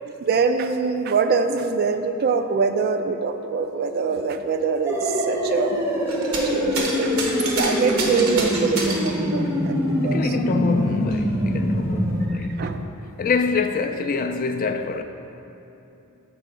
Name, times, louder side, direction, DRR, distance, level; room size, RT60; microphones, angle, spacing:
voice 1, 0.2-5.8 6.4-7.2 7.6-10.4 12.3-12.8, right 5 dB, 45° right, 0.3 m, -24 dB
sound 1, 4.9-12.3, equal, 10° right, 0.7 m, -24 dB
sound 2, 6.1-6.5 6.7-9.2 10.2-10.3 10.8-11.8 12.7-12.8, right 3 dB, 80° right, 1.0 m, -29 dB
voice 2, 10.0-12.7 13.2-15.0, left 4 dB, 40° left, 0.3 m, -25 dB
6.9 x 4.5 x 4.9 m
head